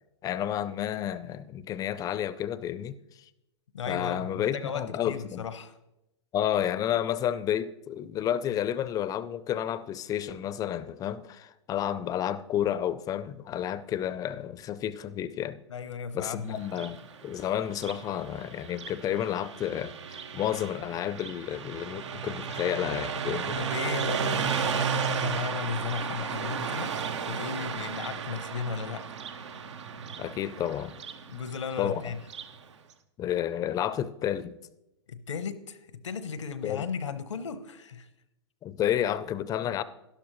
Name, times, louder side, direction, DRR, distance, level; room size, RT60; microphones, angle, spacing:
voice 1, 0.2-2.9 3.9-5.4 6.3-15.6 16.1-23.6 30.2-31.0 31.8-32.0 33.2-34.6 36.6-36.9 38.6-39.8, left 10 dB, 25° left, 0.5 m, -31 dB
voice 2, 3.7-5.8 15.7-16.6 23.5-29.2 31.3-32.2 35.1-38.1, left 6 dB, 85° left, 0.9 m, -35 dB
Car passing by, 16.6-32.6, right 6 dB, 75° right, 0.9 m, -34 dB
12.0 x 11.5 x 3.1 m
hypercardioid pair, 115°, 15 cm